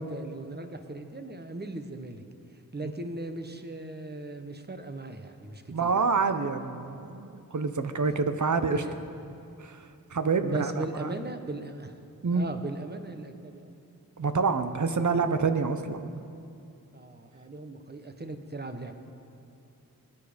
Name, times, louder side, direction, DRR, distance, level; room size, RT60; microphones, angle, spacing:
voice 1, 0.0-2.2 2.5-5.9 8.0-8.1 8.7-9.0 10.4-12.1 12.3-13.7 14.9-15.1 16.9-18.9, right 2 dB, 30° right, 7 dB, 1.2 m, -38 dB
voice 2, 5.7-8.8 9.6-11.1 12.2-12.5 14.2-16.2, right 4 dB, 55° right, 9 dB, 0.9 m, -27 dB
22.5 x 9.7 x 5.2 m, 2.6 s
wide cardioid pair, 70°, 36 cm